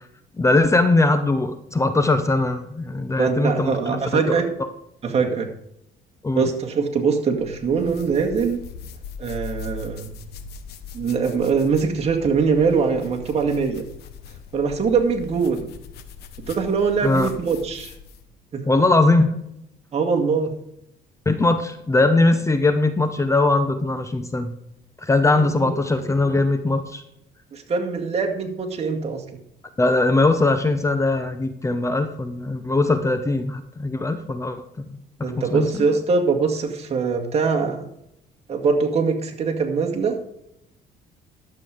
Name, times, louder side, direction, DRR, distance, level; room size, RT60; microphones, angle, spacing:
voice 1, 0.4-3.8 4.1-4.2 6.2-6.5 17.0-17.3 18.7-19.3 21.3-24.5 25.0-27.0 29.8-34.9 35.2-35.9, left 2 dB, 15° left, 9 dB, 0.8 m, -20 dB
voice 2, 3.2-4.5 5.0-5.5 6.4-8.6 9.2-10.1 10.9-13.9 14.5-15.7 16.5-17.9 18.5-18.6 19.9-20.5 25.3-25.8 27.5-29.2 35.2-37.9 38.5-40.1, right 5 dB, 40° right, 2 dB, 2.0 m, -22 dB
sound 1, 7.3-18.3, left 6 dB, 75° left, 1.1 m, -40 dB
11.5 x 7.6 x 5.0 m, 0.80 s
cardioid pair, 110°, 17 cm